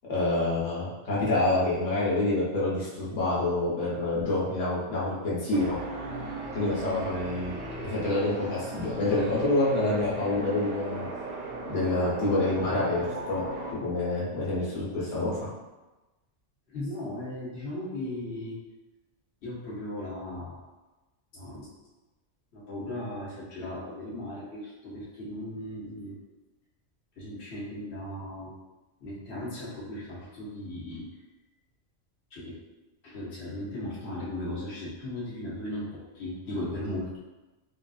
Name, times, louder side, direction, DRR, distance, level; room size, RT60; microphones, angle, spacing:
voice 1, 0.1-5.8 6.5-7.5 7.8-11.1 11.7-13.4 13.7-15.5, left 2 dB, 85° left, -7 dB, 1.3 m, -27 dB
sound 1, 5.5-13.7, right 2 dB, 70° right, 1.0 m, -37 dB
voice 2, 16.7-18.6 19.4-20.6 21.3-21.7 22.5-26.2 27.2-28.5 29.0-31.1 32.3-32.6 33.0-37.2, left 1 dB, 65° left, -7 dB, 1.1 m, -37 dB
3.5 x 2.5 x 2.3 m, 1.1 s
omnidirectional pair, 1.3 m